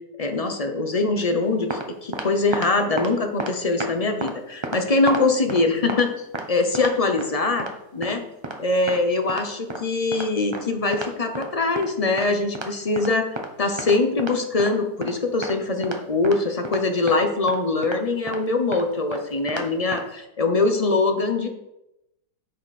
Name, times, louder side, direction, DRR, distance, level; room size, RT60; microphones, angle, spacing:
voice 1, 0.2-7.7 7.9-8.2 8.6-21.5, left 3 dB, 45° left, 5 dB, 0.5 m, -23 dB
sound 1, 1.4-1.9 2.1-2.7 3.0-3.1 3.4-3.9 4.2-4.3 4.6-5.6 5.9-6.0 6.3-6.5 6.7-7.3 7.6-7.7 8.0-8.1 8.4-8.6 8.9-9.0 9.3-9.4 9.7-9.8 10.1-10.3 10.5-10.6 10.9-11.5 11.7-11.9 12.2-12.3 12.5-12.7 13.0-13.5 13.8-14.7 15.0-15.1 15.4-15.6 15.8-16.0 16.2-16.4 16.6-16.8 17.1-17.2 17.5-17.6 17.8-18.0 18.3-18.4 18.7-18.8 19.1-19.2 19.5-19.7 19.9-20.0, right 2 dB, 30° right, 0.5 m, -31 dB
9.3 x 6.4 x 4.2 m, 0.88 s
omnidirectional pair, 1.9 m